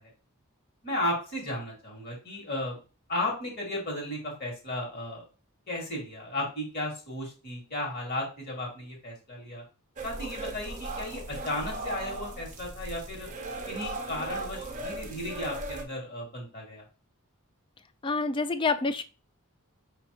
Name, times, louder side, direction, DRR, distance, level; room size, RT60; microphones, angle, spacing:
voice 1, 0.8-2.8 3.1-5.2 5.7-9.6 10.0-13.3 13.7-16.8, left 1 dB, 45° left, -1 dB, 2.1 m, -34 dB
sound 1, 10.0-15.8, right 2 dB, 35° right, 0.7 m, -37 dB
voice 2, 18.0-19.0, left 3 dB, 20° left, 12 dB, 0.3 m, -27 dB
5.6 x 3.2 x 2.9 m, 0.33 s
head